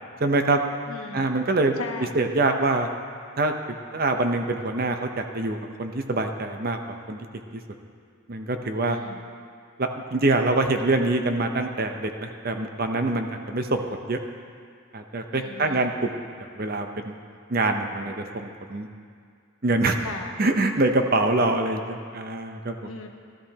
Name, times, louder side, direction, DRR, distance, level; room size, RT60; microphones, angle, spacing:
voice 1, 0.2-0.6 1.1-1.7 2.1-2.9 3.4-3.5 3.9-6.8 7.1-7.2 7.5-7.6 8.3-9.0 9.8-14.2 14.9-16.1 16.4-17.2 17.5-18.9 19.6-20.0 20.4-22.7, right 2 dB, 45° right, 5 dB, 0.7 m, -24 dB
voice 2, 0.9-1.3 1.8-2.2 8.8-9.2 15.3-15.9 20.0-20.4 22.8-23.1, left 3 dB, 80° left, 3 dB, 1.1 m, -37 dB
16.0 x 12.5 x 2.9 m, 2.2 s
head